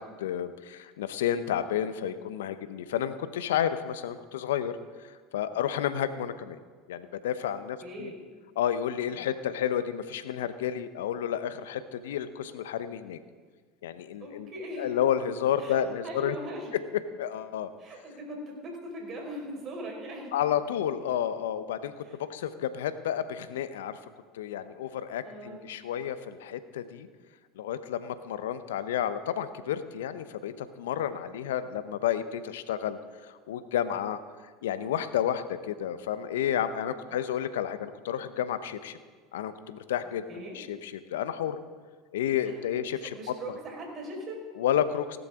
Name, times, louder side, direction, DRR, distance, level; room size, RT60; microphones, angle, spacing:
voice 1, 0.0-4.8 5.3-6.6 6.9-8.1 8.6-13.2 13.8-14.5 14.8-16.3 17.2-17.7 20.3-24.0 24.3-27.1 27.6-34.2 34.6-39.0 39.3-41.6 42.1-43.1 44.6-45.2, left 10 dB, 75° left, 12 dB, 0.8 m, -31 dB
voice 2, 7.8-8.1 9.1-9.3 14.2-14.9 15.6-15.8 16.0-16.7 17.8-20.3 22.0-22.2 25.2-25.6 37.1-37.2 40.3-40.5 42.4-42.6 42.9-44.5, equal, 40° right, 0 dB, 4.8 m, -40 dB
17.0 x 12.0 x 3.7 m, 1.5 s
hypercardioid pair, 75°, 0 cm